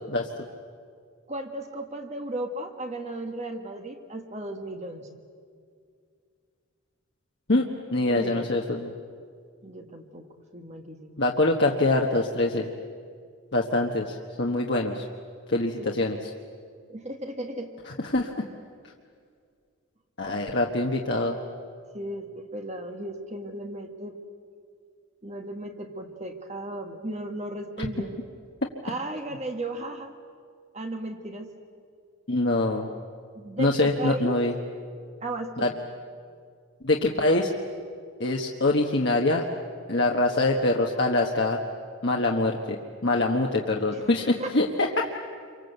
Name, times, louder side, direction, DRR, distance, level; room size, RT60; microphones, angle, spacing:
voice 1, 1.3-5.1 8.1-8.5 9.6-10.3 10.5-11.2 15.8-16.0 16.9-17.7 21.9-24.2 25.2-28.1 28.8-30.1 30.7-31.5 33.3-34.4 35.2-35.8 43.9-44.5, right 1 dB, 30° right, 4 dB, 1.6 m, -35 dB
voice 2, 7.9-8.9 11.2-12.7 13.5-15.0 15.5-16.2 18.1-18.3 20.2-21.4 32.3-32.9 33.6-34.5 35.6-35.7 36.8-37.5 38.2-39.4 39.9-41.6 42.0-42.8 43.0-45.1, left 2 dB, 55° left, 0 dB, 1.3 m, -24 dB
28.0 x 24.5 x 8.1 m, 2.2 s
head